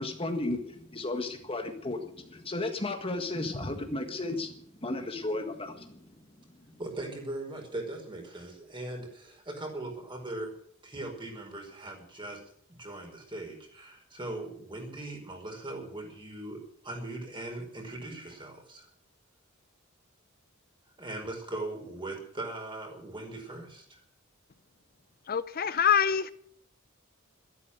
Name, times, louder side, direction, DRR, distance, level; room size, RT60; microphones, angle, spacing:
voice 1, 0.0-6.0 6.7-6.8, left 2 dB, 30° left, 4 dB, 1.7 m, -34 dB
voice 2, 6.8-10.5 10.8-12.4 12.7-16.6 16.8-18.9 21.0-24.0, right 2 dB, 25° right, 1 dB, 5.0 m, -39 dB
voice 3, 25.3-26.3, left 8 dB, 45° left, 13 dB, 0.6 m, -25 dB
13.5 x 12.5 x 8.0 m, 0.65 s
head